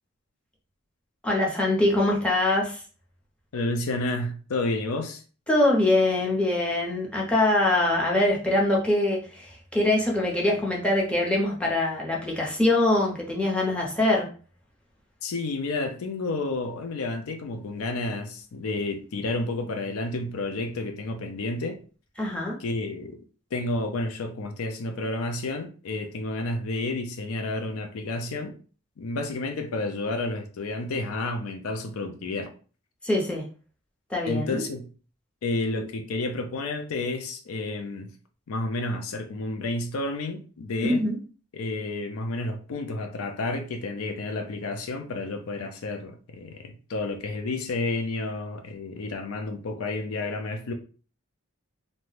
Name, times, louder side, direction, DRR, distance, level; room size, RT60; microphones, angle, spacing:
voice 1, 1.2-2.8 5.5-14.3 22.2-22.6 33.0-33.4 34.1-34.6 40.9-41.2, left 1 dB, 5° left, 0.7 m, -23 dB
voice 2, 3.5-5.2 15.2-21.8 22.6-23.2 23.5-28.6 29.0-32.5 34.3-34.9 35.4-38.1 38.5-41.1 41.5-50.7, left 2 dB, 85° left, 0.4 m, -30 dB
2.6 x 2.1 x 3.1 m
head